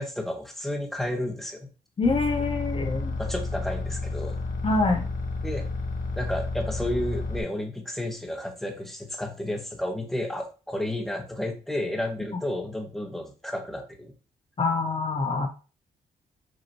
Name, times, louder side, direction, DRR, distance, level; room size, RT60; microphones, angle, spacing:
voice 1, 0.0-1.7 3.2-4.4 5.4-5.7 6.2-14.1, left 1 dB, ahead, 3 dB, 1.1 m, -32 dB
sound 1, 2.0-7.4, left 2 dB, 60° left, 1.0 m, -31 dB
voice 2, 2.0-3.2 4.6-5.1 14.6-15.5, left 3 dB, 35° left, 3 dB, 0.7 m, -25 dB
5.2 x 3.0 x 2.9 m, 0.34 s
cardioid pair, 75°, 16 cm